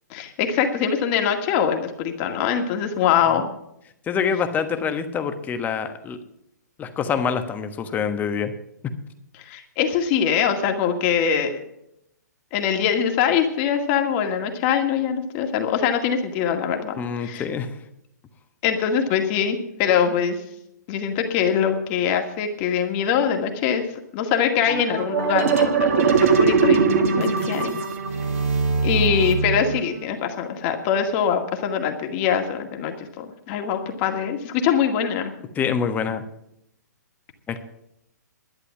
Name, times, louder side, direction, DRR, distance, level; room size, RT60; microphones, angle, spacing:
voice 1, 0.1-3.5 9.5-11.6 12.5-17.4 18.6-20.4 20.9-23.8 24.1-27.7 28.8-35.3, left 8 dB, 35° left, 4 dB, 2.1 m, -23 dB
voice 2, 4.1-6.2 6.8-8.5 17.0-17.7 35.5-36.2 37.5-37.6, left 6 dB, 15° left, 9 dB, 1.2 m, -25 dB
sound 1, 24.7-30.0, right 5 dB, 50° right, 2.0 m, -21 dB
12.0 x 9.8 x 7.2 m, 0.78 s
figure-of-eight pair, 125°, 10 cm